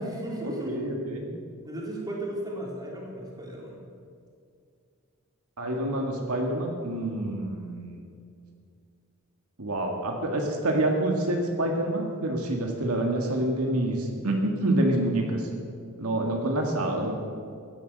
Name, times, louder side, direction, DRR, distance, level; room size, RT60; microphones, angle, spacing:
voice 1, 0.0-0.8 1.6-3.8, right 1 dB, 20° right, -3 dB, 3.3 m, -36 dB
voice 2, 0.7-1.3 5.6-8.0 9.6-15.5 16.0-17.2, right 1 dB, 75° right, 1 dB, 1.9 m, -27 dB
16.0 x 11.0 x 6.6 m, 2.3 s
head